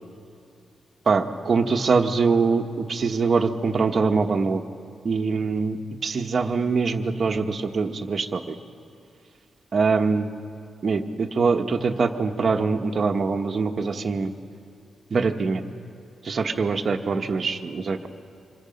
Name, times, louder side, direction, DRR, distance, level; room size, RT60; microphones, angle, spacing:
voice 1, 1.1-4.6 5.0-8.5 9.7-10.3 10.8-14.3 15.1-15.6 16.2-18.1, right 4 dB, 45° right, 4 dB, 1.2 m, -23 dB
26.0 x 23.0 x 5.3 m, 2.5 s
wide cardioid pair, 120°, 0 cm